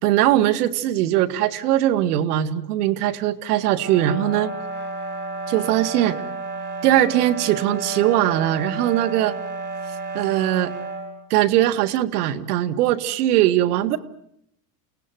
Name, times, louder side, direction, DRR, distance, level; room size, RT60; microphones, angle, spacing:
voice 1, 0.0-4.5 5.5-6.2 6.8-9.4 10.1-10.7 11.3-14.0, right 13 dB, 75° right, 10 dB, 2.2 m, -20 dB
sound 1, 3.6-11.1, right 3 dB, 25° right, 7.6 m, -32 dB
29.5 x 18.0 x 9.3 m, 0.74 s
supercardioid pair, 145°, 46 cm